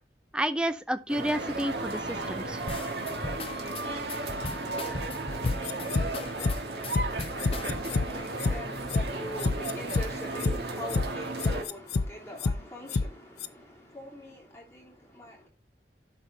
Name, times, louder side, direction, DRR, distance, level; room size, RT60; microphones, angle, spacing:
voice 1, 0.3-2.6, right 1 dB, 5° right, 0.5 m, -30 dB
sound 1, 1.1-11.6, right 2 dB, 70° right, 1.7 m, -34 dB
sound 2, 2.7-8.2, left 2 dB, 30° left, 0.7 m, -38 dB
voice 2, 4.1-15.5, equal, 15° left, 3.0 m, -44 dB
sound 3, 5.5-6.1 6.4-6.5 6.9-7.0 7.4-8.0 8.4-8.5 8.9-9.1 9.4-10.1 10.4-10.5 10.9-11.0 11.4-12.1 12.4-12.5 12.9-13.1 13.4-13.5, left 3 dB, 65° left, 0.5 m, -27 dB
12.0 x 4.3 x 3.9 m
head